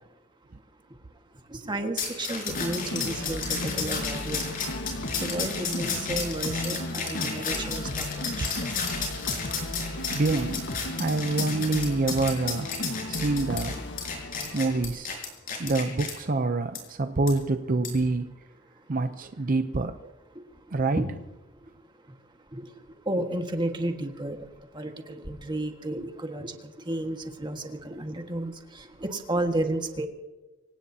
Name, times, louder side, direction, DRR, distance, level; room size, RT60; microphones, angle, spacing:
voice 1, 1.5-4.5 5.2-8.5 20.9-21.1 22.6-22.7 23.1-24.4 24.7-26.6 26.9-28.5 29.0-30.1, right 1 dB, 25° right, 1.6 m, -32 dB
sound 1, 2.0-16.1 16.7-16.8 17.3-17.4 17.8-18.0, left 5 dB, 45° left, 5.2 m, -33 dB
sound 2, 2.5-14.9, left 1 dB, 65° left, 1.5 m, -35 dB
voice 2, 10.1-10.7 10.9-12.7 13.1-13.8 14.5-15.1 15.6-18.3 18.9-20.0 20.7-21.0, right 3 dB, 45° right, 0.6 m, -26 dB
26.0 x 17.5 x 2.8 m
head